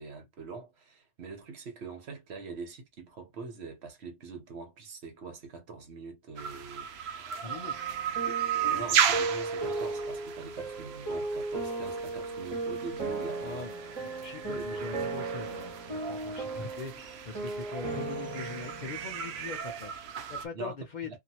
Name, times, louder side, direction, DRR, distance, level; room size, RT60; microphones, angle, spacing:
voice 1, 0.0-6.9 8.3-13.7 14.5-14.9 20.5-20.7 21.1-21.2, right 4 dB, 45° right, 1.1 m, -43 dB
sound 1, 6.4-20.5, right 8 dB, 75° right, 0.5 m, -35 dB
voice 2, 7.4-7.9 13.4-21.2, left 4 dB, 80° left, 0.4 m, -42 dB
sound 2, 7.5-19.6, right 2 dB, 20° right, 1.1 m, -36 dB
2.8 x 2.6 x 2.8 m
omnidirectional pair, 1.7 m